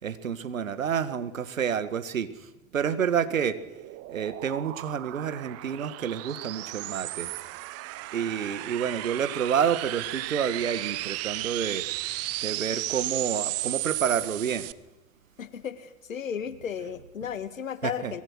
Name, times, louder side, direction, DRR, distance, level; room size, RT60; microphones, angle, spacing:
voice 1, 0.0-2.3 2.7-3.6 4.1-7.3 8.1-11.8 12.4-14.7 17.8-18.1, right 8 dB, 80° right, 13 dB, 1.8 m, -29 dB
sound 1, 3.2-14.7, right 19 dB, 40° right, 1.0 m, -35 dB
voice 2, 15.4-18.2, left 7 dB, 75° left, 13 dB, 1.9 m, -34 dB
23.5 x 22.0 x 6.4 m, 0.95 s
figure-of-eight pair, 85°, 40 cm